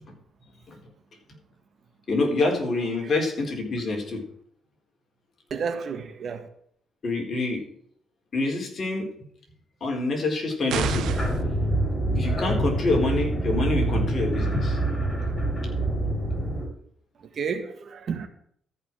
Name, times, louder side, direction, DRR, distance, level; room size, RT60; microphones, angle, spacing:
voice 1, 2.1-4.2 7.0-7.6 8.3-9.1 9.8-11.1 12.1-14.8, left 2 dB, 45° left, 4.3 m, -26 dB
voice 2, 5.5-6.5 17.2-18.3, right 6 dB, 55° right, 1.8 m, -31 dB
sound 1, 10.7-16.7, right 1 dB, 15° left, 6.2 m, -26 dB
sound 2, 10.7-11.4, right 10 dB, 80° right, 0.9 m, -31 dB
13.5 x 5.9 x 7.5 m
cardioid pair, 90°, 0 cm